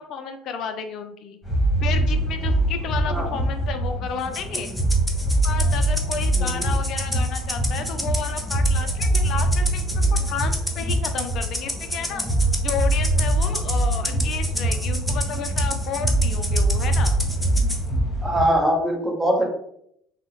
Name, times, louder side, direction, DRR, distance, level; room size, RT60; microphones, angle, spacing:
voice 1, 0.0-1.4 1.8-4.7 5.4-9.8 10.1-12.2 12.6-17.2, left 6 dB, 60° left, 8 dB, 0.3 m, -32 dB
sound 1, 1.4-18.4, right 1 dB, 25° left, 1.4 m, -23 dB
Rattle (instrument), 4.3-17.8, left 1 dB, 5° left, 0.6 m, -31 dB
voice 2, 6.3-6.7 17.9-19.5, equal, 15° right, 1 dB, 0.9 m, -23 dB
3.4 x 2.0 x 2.8 m, 0.72 s
hypercardioid pair, 70°, 0 cm